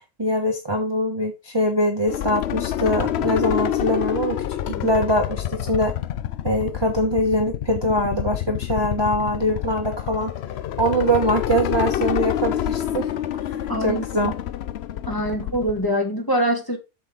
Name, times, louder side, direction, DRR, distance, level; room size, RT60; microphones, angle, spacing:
voice 1, 0.2-4.4 4.7-5.9 6.4-10.3 10.8-14.3, equal, 20° right, 1.1 m, -23 dB
sound 1, 2.1-15.9, left 11 dB, 70° left, 0.6 m, -27 dB
voice 2, 13.7-14.3 15.0-16.8, equal, 15° left, 1.8 m, -24 dB
7.4 x 7.1 x 3.7 m
omnidirectional pair, 1.6 m